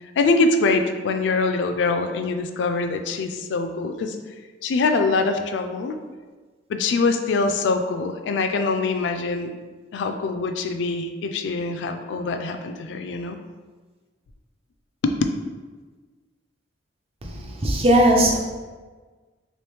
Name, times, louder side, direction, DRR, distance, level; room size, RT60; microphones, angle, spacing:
voice 1, 0.2-4.2 4.6-6.0 6.7-9.5 9.9-13.4 15.0-15.1, left 3 dB, 70° left, 6 dB, 0.3 m, -23 dB
voice 2, 17.6-18.4, right 1 dB, 35° right, 1 dB, 0.5 m, -17 dB
3.0 x 2.9 x 3.3 m, 1.4 s
head